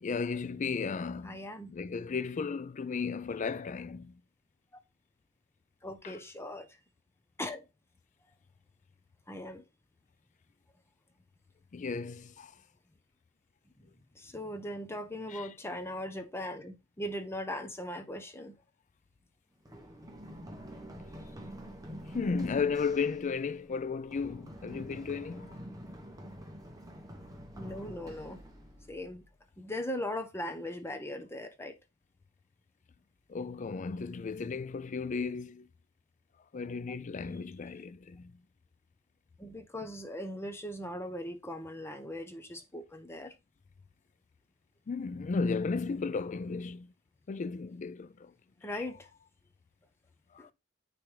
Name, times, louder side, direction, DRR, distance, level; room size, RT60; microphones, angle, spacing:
voice 1, 0.0-1.4 1.7-4.2 6.0-6.2 11.7-12.6 15.3-15.5 22.1-25.6 33.3-35.7 36.5-38.3 44.9-46.9 47.3-48.3 50.3-50.5, left 5 dB, 40° left, 0.4 m, -34 dB
voice 2, 1.2-1.7 5.8-6.7 7.4-7.7 9.3-9.6 13.8-18.5 21.2-21.3 27.5-28.4 28.9-29.2 29.6-31.7 39.4-43.3 48.6-49.1 50.4-50.5, left 1 dB, 15° left, 0.8 m, -39 dB
Run, 19.7-29.4, equal, 20° right, 1.1 m, -47 dB
9.7 x 3.3 x 3.3 m
head